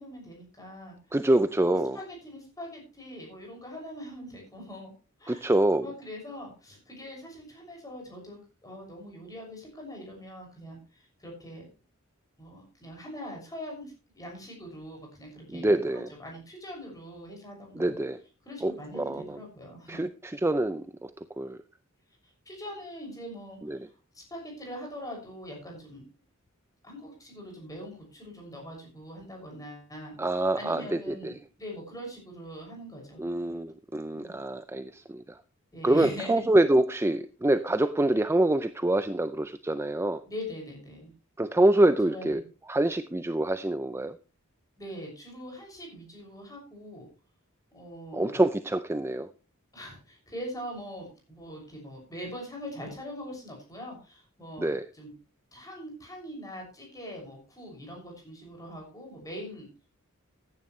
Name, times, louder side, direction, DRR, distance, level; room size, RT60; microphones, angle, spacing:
voice 1, 0.0-1.0 1.7-4.9 5.2-5.5 5.8-11.7 12.4-15.7 15.9-18.0 18.4-20.0 22.4-23.8 24.1-26.1 26.8-30.1 30.5-33.2 34.1-34.4 35.7-36.4 40.2-41.1 42.1-42.4 44.8-47.1 47.7-48.4 49.7-55.1 55.5-59.7, equal, 15° left, 6.4 m, -42 dB
voice 2, 1.1-2.0 5.3-5.9 15.5-16.1 17.8-18.2 18.6-19.4 19.9-21.1 21.4-21.6 23.7-23.8 30.2-31.3 33.2-35.2 35.8-40.2 41.4-42.4 42.7-44.1 48.1-49.3 54.6-54.8, right 1 dB, 10° right, 0.5 m, -25 dB
15.0 x 11.0 x 3.2 m
head